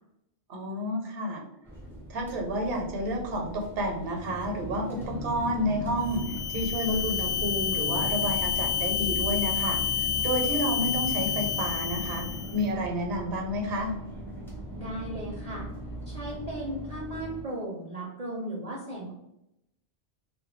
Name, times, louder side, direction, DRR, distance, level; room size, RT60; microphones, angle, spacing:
voice 1, 0.5-1.4 2.1-12.2 12.5-13.9, equal, 70° right, 2 dB, 0.8 m, -30 dB
sound 1, 1.6-17.4, right 1 dB, 5° left, 0.4 m, -38 dB
sound 2, 6.0-12.6, left 9 dB, 90° left, 0.8 m, -29 dB
voice 2, 14.8-15.7 16.1-19.1, right 1 dB, 50° right, -4 dB, 0.5 m, -36 dB
2.1 x 2.1 x 3.0 m, 0.83 s
omnidirectional pair, 1.1 m